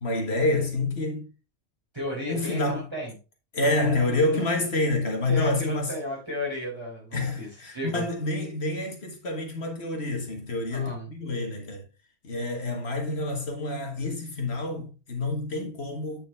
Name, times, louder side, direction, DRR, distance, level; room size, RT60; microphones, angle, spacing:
voice 1, 0.0-1.3 2.3-2.8 3.5-5.9 7.1-11.8 12.2-16.2, left 2 dB, 65° left, 1.8 m, -28 dB
voice 2, 1.9-3.2 4.3-4.5 5.3-8.1 10.7-11.1, equal, 20° right, 3.7 m, -34 dB
8.7 x 5.2 x 3.5 m
omnidirectional pair, 1.2 m